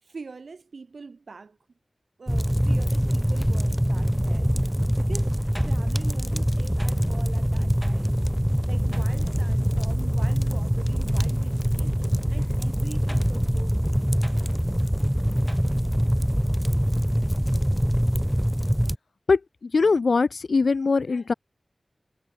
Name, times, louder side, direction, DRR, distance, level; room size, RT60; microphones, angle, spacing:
voice 1, 0.0-1.6 2.2-4.5 5.0-5.4 5.6-8.2 8.7-12.0 12.3-14.0, right 4 dB, 90° right, 2.5 m, -43 dB
sound 1, 2.3-19.0, equal, 5° right, 1.3 m, -24 dB
voice 2, 19.3-21.3, left 4 dB, 85° left, 0.7 m, -22 dB
wide cardioid pair, 65°, 0 cm